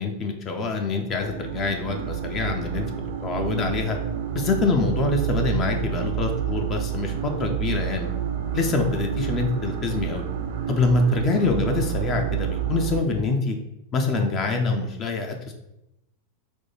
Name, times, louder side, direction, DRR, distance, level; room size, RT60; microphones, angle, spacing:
voice 1, 0.0-4.0 4.3-8.1 8.5-10.2 10.7-13.6 13.9-15.5, left 3 dB, 30° left, 3 dB, 0.6 m, -25 dB
sound 1, 1.1-13.0, right 9 dB, 55° right, 0.5 m, -29 dB
4.4 x 2.3 x 4.2 m, 0.87 s
figure-of-eight pair, 90°, 0 cm